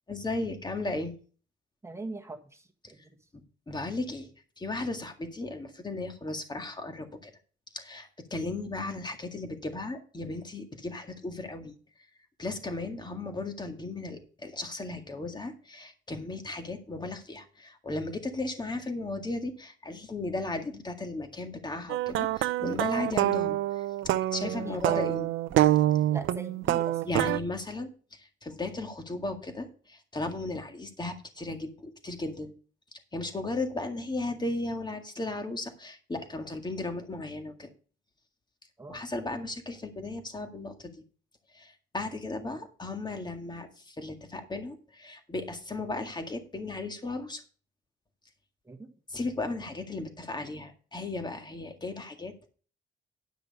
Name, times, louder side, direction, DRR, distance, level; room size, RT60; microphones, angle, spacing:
voice 1, 0.1-1.2 3.7-4.3 4.6-7.3 7.7-11.7 12.4-23.9 24.2-25.3 27.0-32.5 33.1-37.7 38.9-41.0 41.5-47.4 49.1-52.3, left 2 dB, 20° left, 6 dB, 2.0 m, -35 dB
voice 2, 1.8-2.4 2.9-3.0 24.4-25.1 26.1-27.0 38.8-39.0 42.4-42.5 48.7-48.9, right 2 dB, 15° right, 3 dB, 1.5 m, -40 dB
sound 1, 21.9-27.4, right 14 dB, 80° right, 0.5 m, -26 dB
10.5 x 6.0 x 5.4 m, 0.39 s
cardioid pair, 90°, 20 cm